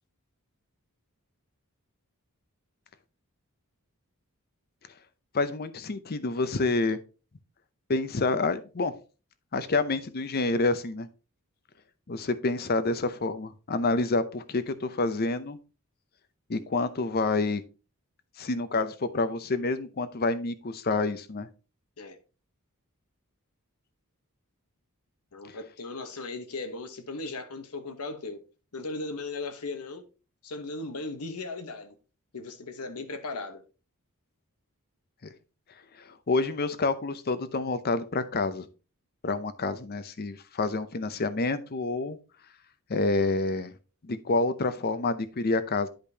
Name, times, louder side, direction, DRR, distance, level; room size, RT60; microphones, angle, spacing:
voice 1, 5.3-7.0 7.9-8.9 9.5-11.1 12.1-15.6 16.5-17.6 18.4-21.5 36.1-38.7 39.2-42.2 42.9-43.7 44.0-45.9, left 3 dB, 45° left, 0.6 m, -28 dB
voice 2, 25.3-28.4 28.7-30.0 30.4-32.0 32.3-33.6, left 3 dB, 90° left, 1.1 m, -37 dB
10.0 x 5.1 x 2.8 m
head